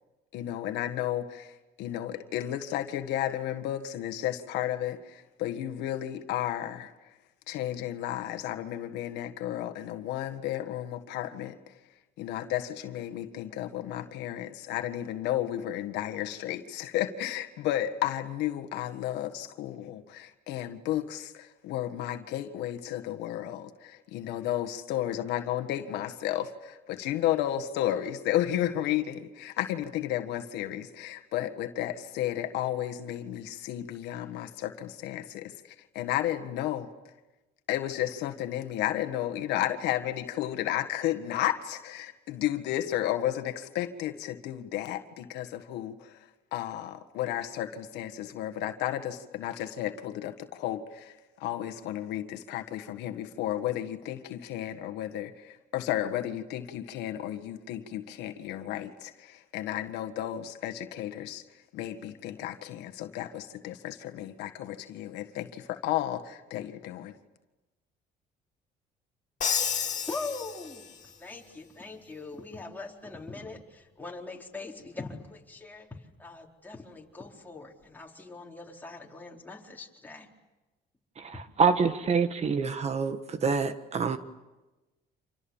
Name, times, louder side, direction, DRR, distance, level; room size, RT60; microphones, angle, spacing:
voice 1, 0.3-6.9 7.5-11.7 12.2-36.9 37.7-61.4 61.7-67.1, left 12 dB, 90° left, 1.7 m, -33 dB
Crash cymbal, 69.4-71.1, left 7 dB, 45° left, 2.4 m, -31 dB
voice 2, 70.1-75.9 76.2-80.3, left 3 dB, 10° left, 4.2 m, -42 dB
voice 3, 81.2-84.2, right 5 dB, 40° right, 1.5 m, -26 dB
30.0 x 27.0 x 7.3 m
cardioid pair, 110°, 17 cm